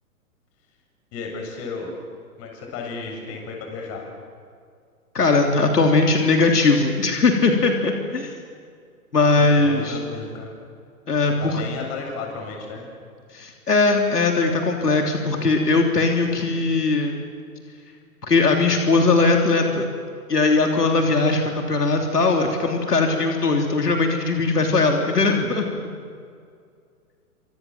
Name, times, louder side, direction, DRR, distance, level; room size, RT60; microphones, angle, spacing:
voice 1, 1.1-1.9 2.4-4.1 9.3-10.5 11.3-12.8, left 4 dB, 30° left, 2 dB, 7.9 m, -33 dB
voice 2, 5.1-8.3 9.1-10.0 11.1-11.6 13.3-17.2 18.2-19.9 20.3-25.7, left 3 dB, 85° left, 2 dB, 3.5 m, -19 dB
29.0 x 27.0 x 7.5 m, 2.2 s
hypercardioid pair, 125°, 46 cm